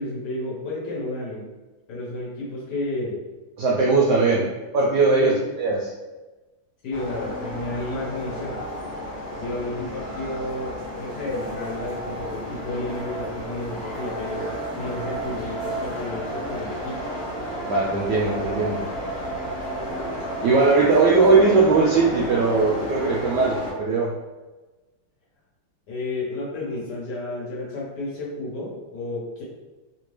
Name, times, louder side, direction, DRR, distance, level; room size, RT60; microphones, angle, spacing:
voice 1, 0.0-1.4 1.9-3.2 4.3-4.5 5.2-5.4 6.8-8.6 9.4-17.0 25.9-29.4, left 2 dB, 60° left, -5 dB, 1.4 m, -31 dB
voice 2, 3.6-4.4 4.7-5.3 5.6-5.9 17.6-18.8 20.4-24.1, right 3 dB, 80° right, -3 dB, 1.0 m, -19 dB
sound 1, 6.9-23.7, equal, 40° left, 1.0 m, -32 dB
3.2 x 2.9 x 3.1 m, 1.2 s
omnidirectional pair, 2.3 m